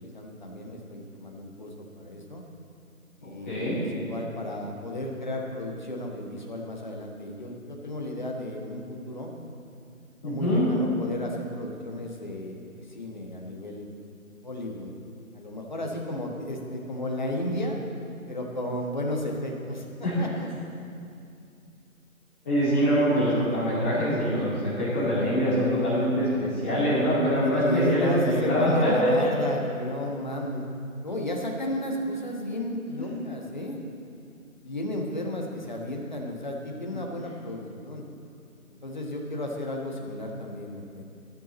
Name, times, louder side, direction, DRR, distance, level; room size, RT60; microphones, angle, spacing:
voice 1, 0.0-2.4 3.2-3.7 3.9-9.3 10.2-13.9 14.4-14.9 15.3-17.8 18.3-20.5 27.6-30.6 31.0-33.8 34.6-38.0 38.8-41.0, left 1 dB, 30° left, 0 dB, 1.2 m, -33 dB
voice 2, 3.2-3.8 10.2-10.7 20.0-20.1 22.4-29.1, equal, 10° left, -12 dB, 2.6 m, -24 dB
14.5 x 9.8 x 4.1 m, 2.4 s
figure-of-eight pair, 165°, 44 cm